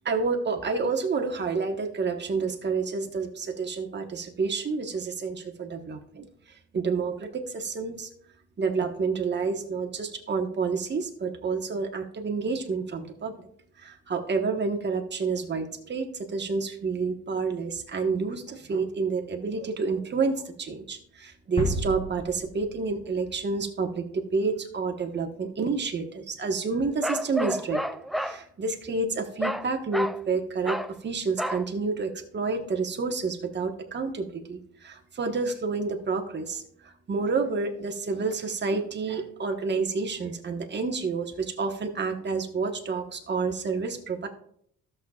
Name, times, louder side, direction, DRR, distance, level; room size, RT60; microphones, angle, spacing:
voice 1, 0.0-8.1 8.6-13.5 13.8-27.8 28.1-44.3, right 4 dB, 35° right, 3 dB, 1.3 m, -29 dB
sound 1, 21.6-23.5, equal, 20° left, 1.3 m, -32 dB
Bark, 27.0-28.4 29.4-29.7 29.9-30.2 30.6-30.9 31.4-31.7, equal, ahead, 0.3 m, -30 dB
13.5 x 6.7 x 2.4 m, 0.64 s
cardioid pair, 90°, 30 cm